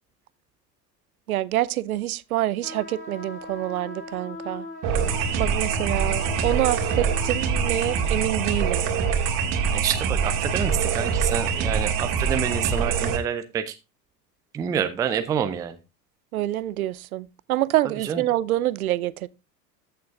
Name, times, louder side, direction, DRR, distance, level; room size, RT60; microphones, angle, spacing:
voice 1, 1.3-4.7 5.4-8.9 16.3-19.3, right 14 dB, 60° right, 0.6 m, -26 dB
sound 1, 2.6-8.0, left 2 dB, 15° left, 3.2 m, -40 dB
sound 2, 4.8-13.2, right 6 dB, 40° right, 2.1 m, -24 dB
voice 2, 9.7-13.8 14.5-15.8 18.0-18.2, right 8 dB, 10° right, 0.4 m, -28 dB
14.5 x 6.7 x 2.4 m
figure-of-eight pair, 80°, 49 cm